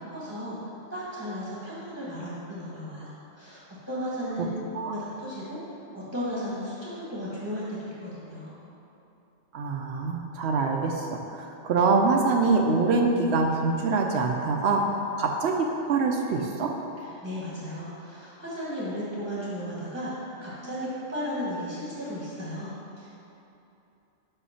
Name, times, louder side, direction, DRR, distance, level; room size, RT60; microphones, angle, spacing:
voice 1, 0.1-0.6 0.9-4.5 4.8-5.6 5.9-8.6 17.2-23.1, equal, 10° right, -8 dB, 1.2 m, -35 dB
voice 2, 9.5-16.7, right 3 dB, 75° right, 2 dB, 0.8 m, -25 dB
5.6 x 5.3 x 5.6 m, 2.9 s
omnidirectional pair, 1.2 m